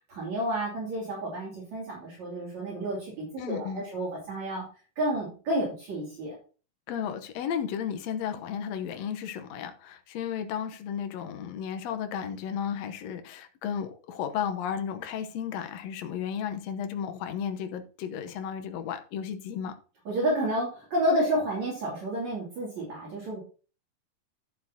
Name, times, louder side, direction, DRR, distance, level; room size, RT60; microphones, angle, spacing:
voice 1, 0.1-4.6 5.0-6.4 20.1-23.4, right 1 dB, 50° right, 3.8 m, -30 dB
voice 2, 3.4-3.8 6.9-19.7, left 8 dB, 70° left, 1.6 m, -34 dB
12.0 x 7.8 x 2.8 m
omnidirectional pair, 4.2 m